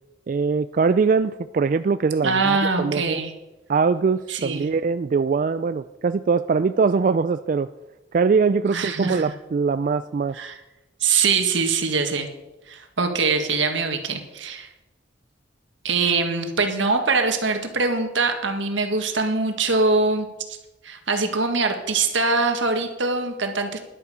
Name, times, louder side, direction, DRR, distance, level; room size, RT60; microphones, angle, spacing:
voice 1, 0.3-3.2 3.7-7.7 8.1-10.4, right 5 dB, 45° right, 12 dB, 0.3 m, -22 dB
voice 2, 2.2-3.3 4.3-4.7 8.7-9.2 10.3-10.6 11.0-12.3 12.7-14.7 15.8-20.3 20.8-23.8, right 4 dB, 80° right, 5 dB, 1.7 m, -23 dB
12.0 x 11.0 x 5.0 m, 1.0 s
head